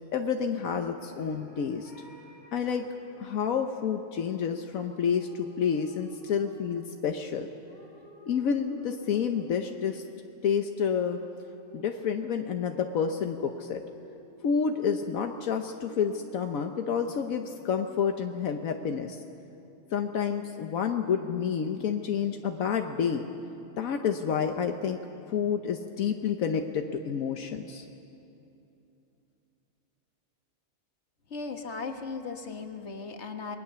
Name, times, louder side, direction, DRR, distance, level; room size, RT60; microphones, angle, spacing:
voice 1, 0.1-1.9 2.5-2.9 3.2-7.5 8.3-10.0 10.4-11.2 11.7-13.8 14.4-19.2 19.9-23.2 23.8-25.0 25.3-27.8, left 7 dB, 80° left, 5 dB, 1.3 m, -29 dB
sound 1, 1.0-3.9 5.0-9.8 11.2-17.3, equal, 60° right, 8.2 m, -53 dB
voice 2, 31.3-33.6, left 4 dB, 55° left, 5 dB, 1.8 m, -37 dB
27.5 x 20.0 x 6.9 m, 2.8 s
omnidirectional pair, 1.4 m